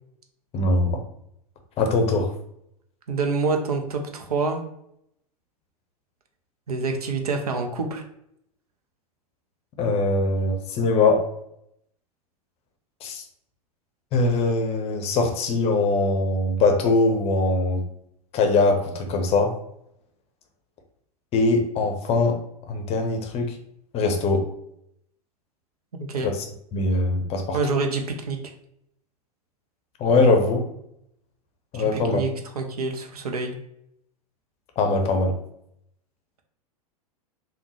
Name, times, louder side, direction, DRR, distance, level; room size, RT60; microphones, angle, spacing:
voice 1, 0.5-1.0 1.8-2.3 9.8-11.2 13.0-13.2 14.1-17.8 18.3-19.5 21.3-22.4 22.7-23.5 23.9-24.5 26.7-27.6 30.0-30.7 31.7-32.2 34.8-35.3, left 3 dB, 30° left, 4 dB, 0.6 m, -21 dB
voice 2, 3.1-4.6 6.7-8.0 26.1-26.3 27.5-28.4 31.7-33.6, right 4 dB, 75° right, 4 dB, 0.6 m, -27 dB
3.5 x 2.2 x 3.0 m, 0.75 s
figure-of-eight pair, 95°, 19 cm